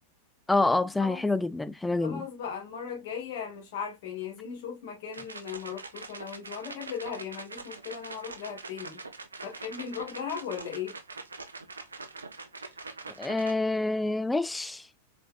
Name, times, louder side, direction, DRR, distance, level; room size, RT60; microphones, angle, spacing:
voice 1, 0.5-2.3 13.2-14.9, left 2 dB, 5° left, 0.4 m, -27 dB
voice 2, 2.0-9.0 9.4-10.9, left 7 dB, 55° left, 2.2 m, -37 dB
sound 1, 5.1-13.5, right 3 dB, 75° right, 0.6 m, -43 dB
4.4 x 4.2 x 2.3 m
figure-of-eight pair, 90°, 0 cm